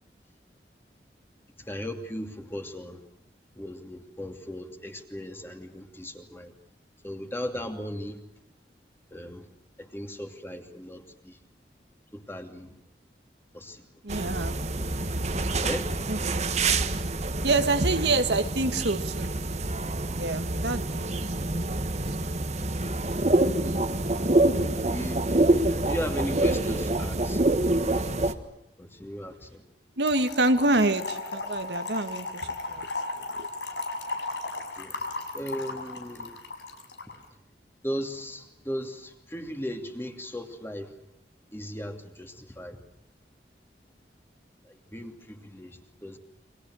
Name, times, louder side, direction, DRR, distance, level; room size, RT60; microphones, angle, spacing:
voice 1, 1.6-3.0 3.5-6.5 7.0-8.2 9.1-9.5 9.8-11.4 12.1-12.7 13.5-13.9 15.4-16.0 20.4-20.5 20.9-21.0 23.8-27.8 28.1-28.4 28.8-29.6 34.6-36.4 37.1-37.2 37.8-40.9 41.5-42.8 44.6-46.2, equal, 15° left, 5 dB, 2.7 m, -37 dB
voice 2, 14.0-14.6 16.1-16.2 16.6-16.7 17.4-19.3 20.2-21.8 30.0-32.9 33.3-33.5, right 2 dB, 75° right, 8 dB, 1.8 m, -27 dB
sound 1, 14.1-28.3, right 2 dB, 40° right, 1.5 m, -26 dB
Trickle dribble / Fill (with liquid), 30.1-37.1, left 3 dB, 85° left, 6.2 m, -35 dB
29.5 x 24.5 x 6.4 m, 0.83 s
head